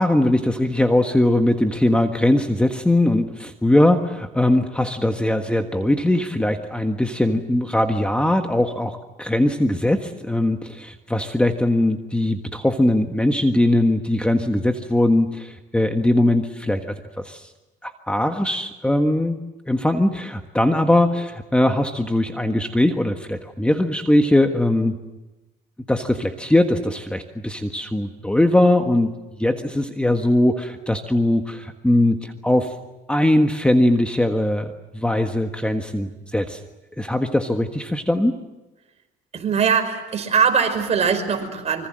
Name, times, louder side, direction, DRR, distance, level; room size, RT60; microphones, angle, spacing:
voice 1, 0.0-17.5 17.8-19.4 19.7-25.0 25.9-32.7 33.1-36.6 37.0-38.4, left 1 dB, 5° left, 6 dB, 1.5 m, -20 dB
voice 2, 39.3-41.9, right 6 dB, 40° right, 6 dB, 5.4 m, -21 dB
26.0 x 25.0 x 7.8 m, 1.0 s
cardioid pair, 110°, 17 cm